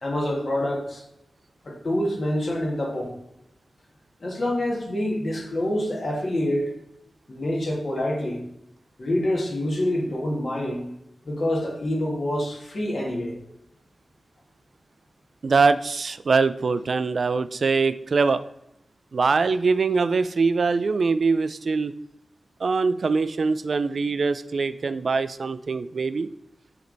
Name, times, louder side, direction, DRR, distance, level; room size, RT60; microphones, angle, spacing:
voice 1, 0.0-1.0 1.6-3.1 4.2-6.7 7.3-8.4 9.0-10.9 11.3-13.4, left 1 dB, 50° left, -1 dB, 1.7 m, -26 dB
voice 2, 15.4-18.4 19.1-21.9 22.6-26.3, right 4 dB, 60° right, 13 dB, 0.3 m, -23 dB
7.9 x 3.4 x 3.9 m, 0.84 s
wide cardioid pair, 125°, 0 cm